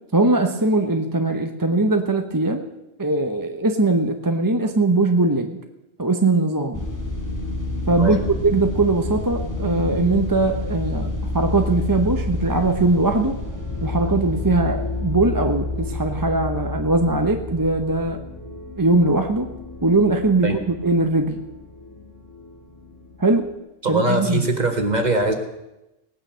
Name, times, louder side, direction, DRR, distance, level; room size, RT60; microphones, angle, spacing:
voice 1, 0.1-2.6 3.0-5.6 6.0-6.9 7.9-13.4 13.8-18.2 18.8-19.5 19.8-21.4 23.2-23.5 23.9-24.5, right 2 dB, 20° right, 5 dB, 0.9 m, -20 dB
sound 1, 6.7-23.5, left 2 dB, 15° left, 2.3 m, -30 dB
voice 2, 23.8-25.3, right 1 dB, 40° right, 5 dB, 1.8 m, -21 dB
18.5 x 9.5 x 6.9 m, 0.94 s
omnidirectional pair, 1.1 m